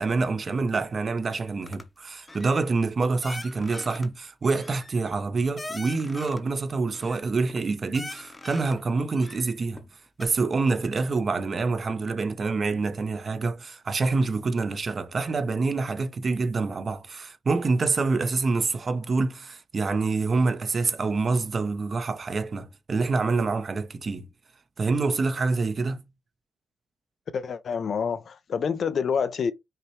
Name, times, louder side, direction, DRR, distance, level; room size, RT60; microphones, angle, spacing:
voice 1, 0.0-9.8 10.2-24.3 24.8-26.0, right 3 dB, 35° right, 0.8 m, -26 dB
sound 1, 1.6-1.9 2.2-2.6 3.2-4.1 4.4-6.5 6.9-7.6 7.9-8.8 9.1-9.9 10.2-10.3, left 2 dB, 15° left, 0.8 m, -41 dB
voice 2, 27.3-29.5, left 6 dB, 50° left, 0.5 m, -27 dB
5.7 x 2.9 x 3.1 m
cardioid pair, 100°, 0 cm